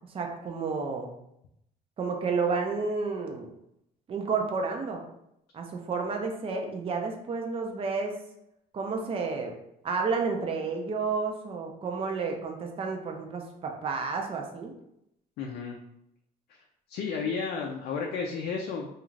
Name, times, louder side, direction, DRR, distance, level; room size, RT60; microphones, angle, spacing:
voice 1, 0.1-1.1 2.0-3.5 4.1-5.0 5.5-8.2 8.7-9.5 9.8-14.7, right 4 dB, 35° right, 3 dB, 0.5 m, -31 dB
voice 2, 15.4-15.8 16.9-18.9, left 5 dB, 70° left, 1 dB, 0.4 m, -32 dB
2.4 x 2.4 x 3.1 m, 0.78 s
cardioid pair, 110°, 17 cm